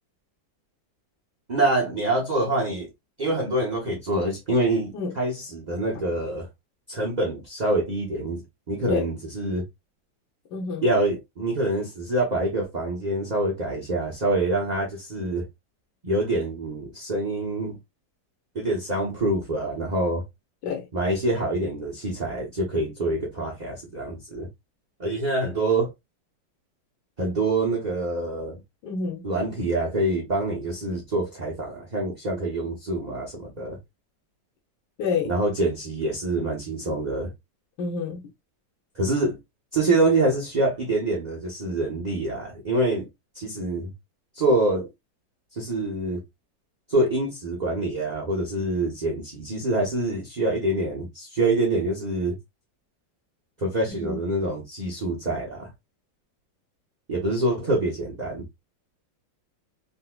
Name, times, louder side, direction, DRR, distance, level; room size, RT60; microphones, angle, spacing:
voice 1, 1.5-2.9 3.2-6.5 6.9-9.6 10.8-15.5 16.0-17.8 18.5-20.2 20.9-24.5 25.0-25.9 27.2-28.6 29.2-33.8 35.2-37.3 38.9-39.4 39.7-43.1 43.3-43.9 44.3-44.9 45.5-46.2 46.9-52.4 53.6-55.7 57.1-58.4, right 2 dB, 70° right, 0.4 m, -26 dB
voice 2, 10.5-10.9 20.6-20.8 28.8-29.2 35.0-35.3 37.8-38.2 53.9-54.2, left 5 dB, 70° left, 1.4 m, -28 dB
3.9 x 2.5 x 2.2 m
omnidirectional pair, 2.1 m